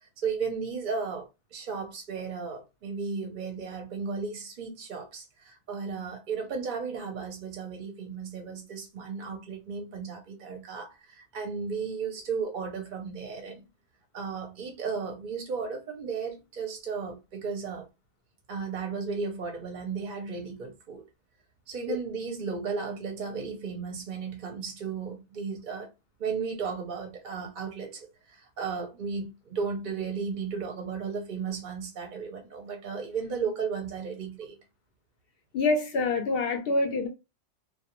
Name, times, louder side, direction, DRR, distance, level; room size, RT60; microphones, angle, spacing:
voice 1, 0.0-13.6 14.1-17.9 18.5-21.0 21.7-25.9 26.2-34.6, right 5 dB, 55° right, 0.6 m, -35 dB
voice 2, 35.5-37.1, left 3 dB, 65° left, 0.7 m, -26 dB
2.2 x 2.1 x 2.8 m
omnidirectional pair, 1.2 m